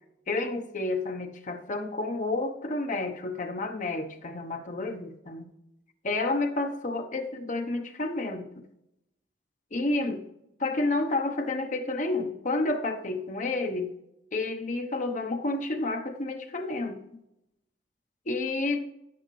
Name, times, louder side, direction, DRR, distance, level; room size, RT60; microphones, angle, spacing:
voice 1, 0.3-5.5 6.0-8.5 9.7-10.2 10.6-13.9 14.3-17.0 18.3-18.9, left 2 dB, 45° left, 5 dB, 0.9 m, -30 dB
11.0 x 9.5 x 3.2 m, 0.84 s
head